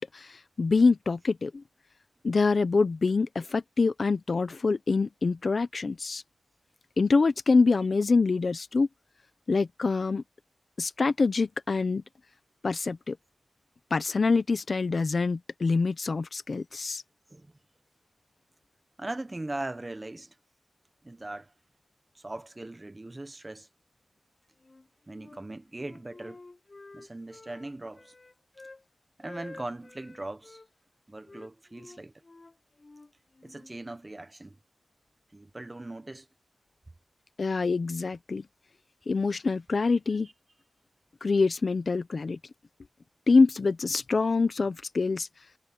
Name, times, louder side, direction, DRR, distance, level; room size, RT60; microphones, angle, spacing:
voice 1, 0.0-1.6 2.2-6.2 7.0-8.9 9.5-10.2 10.8-12.0 12.6-13.2 13.9-17.0 37.4-38.4 39.1-40.3 41.2-42.4 43.3-45.3, left 4 dB, 60° left, 1.0 m, -25 dB
voice 2, 19.0-20.3 21.0-21.5 22.1-23.7 25.1-26.4 26.9-28.1 29.2-30.6 31.1-32.1 33.4-34.6 35.3-36.3, right 2 dB, 25° right, 1.2 m, -39 dB
Wind instrument woodwind instrument, 24.6-25.4 25.8-28.8 29.2-30.7 31.2-33.7, left 3 dB, 40° left, 4.2 m, -50 dB
wide cardioid pair, 85°, 0 cm